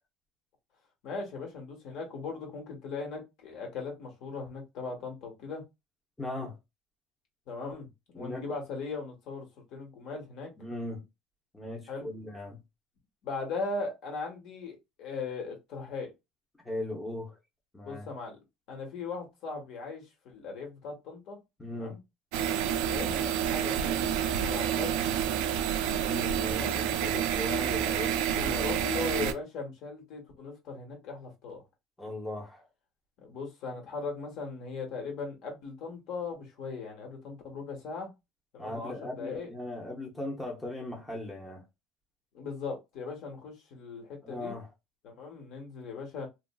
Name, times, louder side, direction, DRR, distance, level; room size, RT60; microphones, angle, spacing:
voice 1, 1.0-5.6 7.5-7.9 8.1-10.5 11.9-12.1 13.2-16.1 17.8-18.4 18.7-21.4 21.8-22.0 22.8-25.0 26.5-26.8 28.3-31.6 33.2-38.1 38.5-39.5 42.3-44.5 45.0-46.3, left 4 dB, 60° left, 1.2 m, -38 dB
voice 2, 6.2-6.5 8.1-8.4 10.6-11.0 11.5-12.6 16.6-17.4 17.7-18.1 21.6-21.9 26.0-28.8 32.0-32.6 38.6-41.6 44.2-44.7, left 1 dB, 10° left, 0.7 m, -38 dB
sound 1, 22.3-29.3, right 9 dB, 85° right, 0.3 m, -29 dB
3.0 x 2.4 x 2.2 m
cardioid pair, 140°, 0 cm